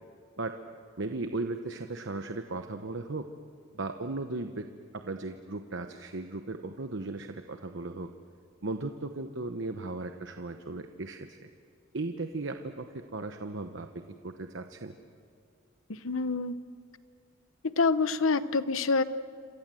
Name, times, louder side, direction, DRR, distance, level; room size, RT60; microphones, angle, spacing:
voice 1, 1.0-3.3 3.7-4.7 4.9-8.1 8.6-11.5 11.9-14.9, right 2 dB, 65° right, 7 dB, 1.0 m, -36 dB
voice 2, 15.9-16.6 17.6-19.0, left 4 dB, 80° left, 13 dB, 0.9 m, -26 dB
28.0 x 26.5 x 7.7 m, 2.3 s
head